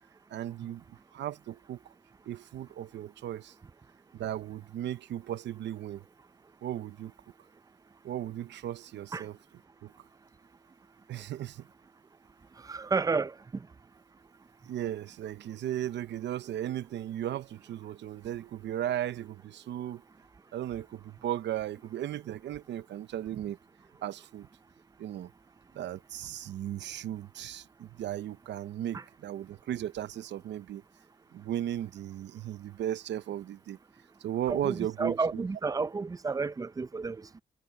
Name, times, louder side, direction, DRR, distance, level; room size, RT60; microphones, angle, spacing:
voice 1, 0.3-1.8 2.3-3.5 4.1-6.0 6.6-7.1 8.0-9.4 9.8-9.9 11.1-11.7 14.6-20.0 20.5-23.6 24.0-24.5 25.0-25.3 25.7-30.8 31.3-33.8 34.2-35.4, right 11 dB, 70° right, 0.7 m, -36 dB
voice 2, 12.6-13.7 28.9-29.0 34.5-37.4, right 4 dB, 20° right, 0.5 m, -32 dB
cardioid pair, 135°, 19 cm